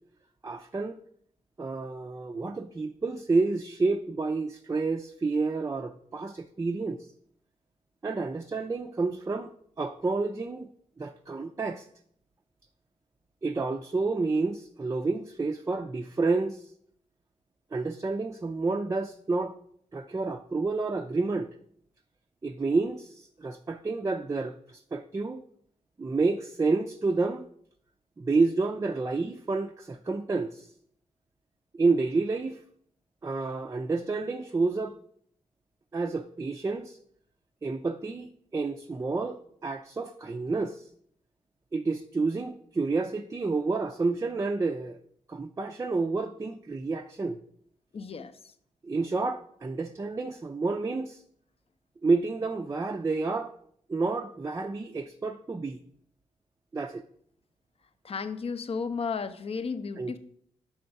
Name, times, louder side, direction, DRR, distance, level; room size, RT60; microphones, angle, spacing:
voice 1, 0.4-1.0 1.6-7.1 8.0-9.5 9.8-10.7 11.0-11.9 13.4-16.7 17.7-19.5 19.9-21.5 22.4-25.4 26.0-27.5 28.2-30.7 31.7-32.6 33.2-35.0 35.9-37.0 37.6-40.9 41.7-45.0 45.3-47.4 48.8-51.2 52.0-53.5 53.9-55.8 56.7-57.0 60.0-60.2, right 3 dB, 25° right, 0.4 m, -29 dB
voice 2, 47.9-48.3 58.0-60.2, left 5 dB, 45° left, 0.6 m, -33 dB
6.0 x 4.5 x 5.3 m
cardioid pair, 65°, 14 cm